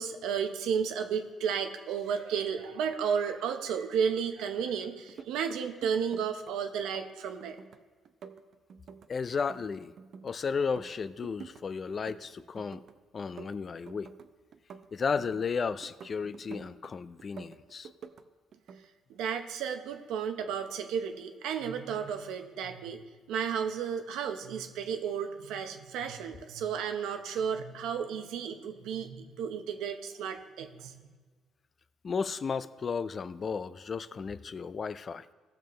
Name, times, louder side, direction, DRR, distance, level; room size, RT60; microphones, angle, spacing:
voice 1, 0.0-7.6 19.1-31.0, right 7 dB, 90° right, 6 dB, 0.8 m, -33 dB
sound 1, 5.0-6.5 6.8-7.8 8.1-10.3 10.6-11.6 11.9-12.9 13.2-15.5 15.8-16.9 17.2-18.2 18.5-18.9, right 6 dB, 55° right, 0.5 m, -48 dB
voice 2, 9.1-9.9 10.2-12.8 13.1-14.1 14.9-17.9 32.0-35.3, left 5 dB, 35° left, 15 dB, 0.3 m, -34 dB
16.5 x 6.9 x 3.2 m, 1.4 s
cardioid pair, 120°, 0 cm